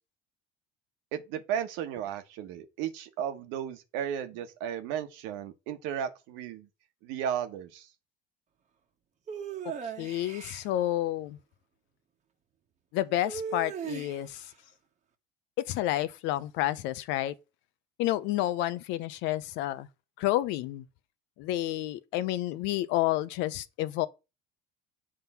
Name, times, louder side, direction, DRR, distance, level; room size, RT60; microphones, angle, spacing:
voice 1, 1.1-6.7 7.0-7.9, right 9 dB, 75° right, 1.2 m, -34 dB
sound 1, 9.3-10.7 13.2-14.4, right 6 dB, 35° right, 1.2 m, -37 dB
voice 2, 10.0-11.4 12.9-14.4 15.6-17.3 18.0-19.9 20.2-20.8 21.4-24.1, left 14 dB, 70° left, 0.7 m, -30 dB
7.6 x 3.7 x 5.7 m
supercardioid pair, 90°, 20 cm